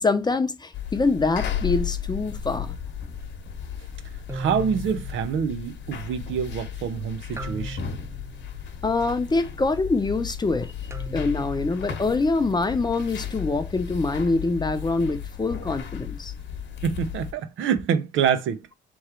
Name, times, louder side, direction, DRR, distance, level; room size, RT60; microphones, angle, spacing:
voice 1, 0.0-2.7 8.8-10.7 11.1-16.3, left 3 dB, 20° left, 0.7 m, -25 dB
sound 1, 0.7-17.3, left 8 dB, 65° left, 1.1 m, -34 dB
sound 2, 2.3-2.6 4.3-6.2 7.4-9.0 10.9-12.4, right 2 dB, 15° right, 0.5 m, -40 dB
voice 2, 4.3-7.9 16.8-18.6, right 7 dB, 80° right, 0.7 m, -26 dB
3.6 x 3.1 x 4.3 m
cardioid pair, 90°, 20 cm